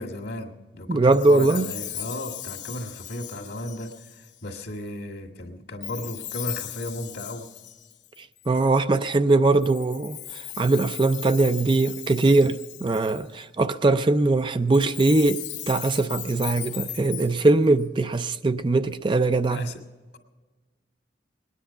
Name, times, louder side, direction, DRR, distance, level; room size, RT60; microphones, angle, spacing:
voice 1, 0.0-7.5 19.5-19.8, left 1 dB, 70° left, 1.9 m, -35 dB
voice 2, 0.9-1.6 8.5-19.6, right 2 dB, 25° right, 0.4 m, -21 dB
Chime, 1.1-4.5 5.8-8.7 9.6-13.4 14.7-17.8, left 13 dB, 90° left, 0.9 m, -38 dB
21.5 x 10.0 x 5.7 m
head